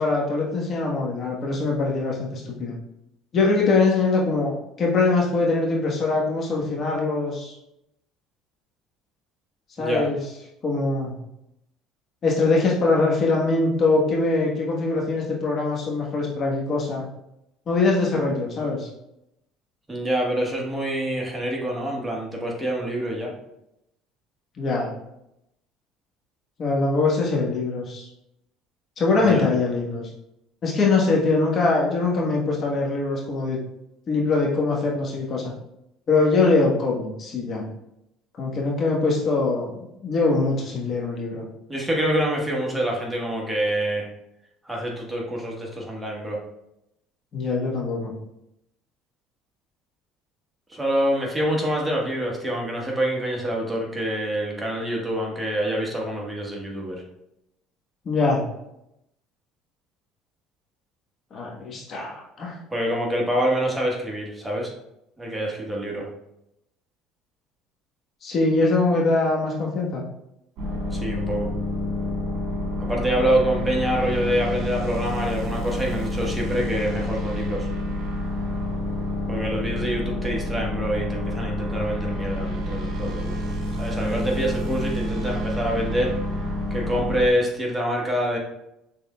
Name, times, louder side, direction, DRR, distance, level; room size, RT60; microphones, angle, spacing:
voice 1, 0.0-2.8 3.3-7.5 9.8-10.2 10.6-11.2 12.2-17.1 17.7-18.9 24.6-24.9 26.6-28.1 29.0-30.1 30.6-33.6 34.1-35.5 36.1-37.6 38.4-41.5 47.3-48.1 58.0-58.4 61.3-62.6 68.2-70.0 73.1-73.3 84.7-84.8, left 3 dB, 45° left, -2 dB, 1.3 m, -23 dB
voice 2, 19.9-23.3 29.2-29.5 41.7-44.1 44.6-46.4 50.7-57.0 62.7-64.7 65.2-66.1 70.9-71.5 72.8-77.7 79.3-83.5 83.8-86.1 86.7-88.4, right 1 dB, 10° right, -2 dB, 1.3 m, -26 dB
sound 1, 70.6-87.3, left 1 dB, 60° right, 1.6 m, -28 dB
6.7 x 3.5 x 2.3 m, 0.83 s
supercardioid pair, 90°, 0 cm